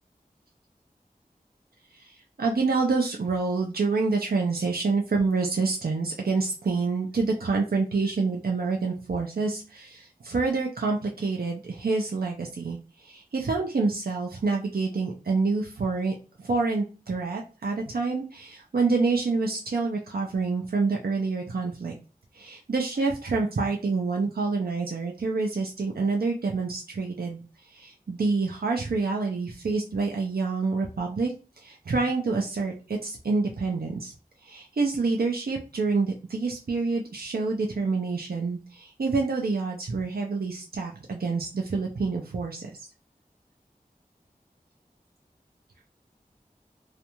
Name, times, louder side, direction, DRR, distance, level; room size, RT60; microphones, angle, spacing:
voice 1, 1.9-21.9 22.3-34.1 34.4-42.7, right 4 dB, 85° right, 0 dB, 0.5 m, -27 dB
2.5 x 2.2 x 2.9 m, 0.33 s
wide cardioid pair, 40°, 15 cm